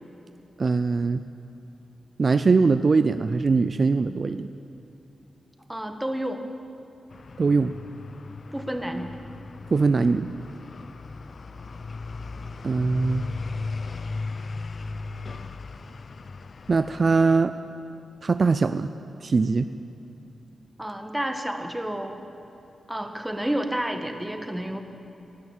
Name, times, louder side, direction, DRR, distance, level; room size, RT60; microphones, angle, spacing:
voice 1, 0.6-1.2 2.2-4.5 7.4-7.8 9.7-10.3 12.6-13.2 16.7-17.5 18.2-18.9 19.2-19.7, right 4 dB, 50° right, 11 dB, 0.4 m, -21 dB
voice 2, 5.7-6.5 8.5-9.2 20.8-22.2 22.9-24.8, right 1 dB, 10° right, 5 dB, 1.4 m, -30 dB
sound 1, 7.1-17.4, left 3 dB, 55° left, 0.5 m, -37 dB
19.0 x 6.4 x 8.9 m, 2.9 s
cardioid pair, 60°, 0 cm